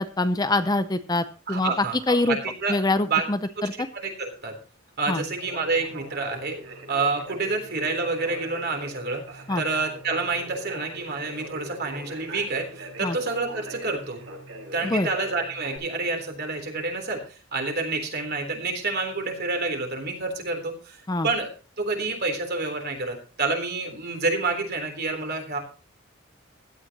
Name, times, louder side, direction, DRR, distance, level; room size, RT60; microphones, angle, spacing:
voice 1, 0.0-1.7 2.1-2.4 2.7-3.7 5.1-5.2 9.5-9.6 13.0-13.2 14.8-15.1 21.1-21.3, left 2 dB, 20° left, 10 dB, 0.6 m, -24 dB
voice 2, 1.5-2.8 3.0-3.2 3.9-4.6 5.0-6.6 6.9-14.2 14.7-17.2 17.5-21.0 21.2-21.5 21.8-25.6, right 3 dB, 50° right, 4 dB, 3.7 m, -28 dB
Conversation, 5.3-15.8, right 2 dB, 65° right, 5.8 m, -41 dB
16.0 x 12.0 x 3.0 m, 0.36 s
head